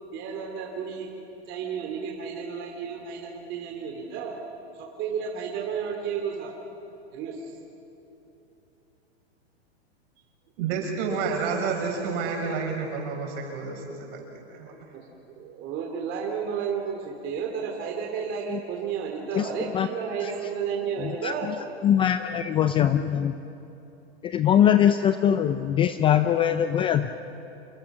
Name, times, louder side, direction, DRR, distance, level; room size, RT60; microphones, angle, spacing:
voice 1, 0.1-1.1 1.5-4.4 4.7-6.5 7.1-7.6 11.5-12.4 14.9-15.0 15.3-21.5, right 6 dB, 35° right, 0 dB, 2.7 m, -32 dB
voice 2, 10.6-14.7, right 5 dB, 50° right, 1 dB, 6.5 m, -30 dB
voice 3, 19.3-19.9 20.2-20.3 21.0-21.5 21.8-23.3 24.2-27.1, left 9 dB, 15° left, 10 dB, 0.4 m, -22 dB
27.5 x 22.0 x 6.0 m, 3.0 s
hypercardioid pair, 135°, 33 cm